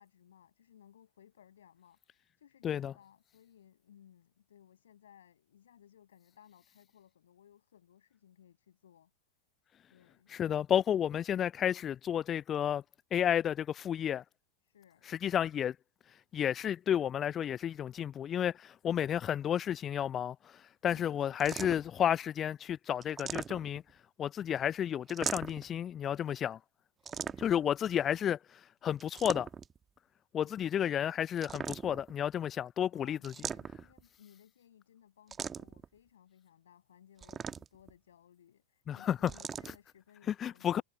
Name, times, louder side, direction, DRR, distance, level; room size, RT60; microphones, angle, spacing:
voice 1, 0.0-9.1 9.9-10.3 14.6-15.1 20.9-21.8 27.0-28.0 30.4-30.5 32.9-40.8, left 9 dB, 65° left, 7.4 m, -61 dB
voice 2, 10.3-12.8 13.1-14.2 15.1-15.7 16.3-23.8 24.2-26.6 27.4-29.5 30.3-33.3 38.9-39.2 40.3-40.8, left 9 dB, 25° left, 0.4 m, -32 dB
sound 1, 21.4-22.0 23.0-23.9 25.1-25.7 27.1-27.7 29.0-29.8 31.4-32.1 33.2-34.0 35.3-35.9 37.2-37.9 39.3-39.8, right 6 dB, 20° right, 1.4 m, -40 dB
figure-of-eight pair, 90°, 0 cm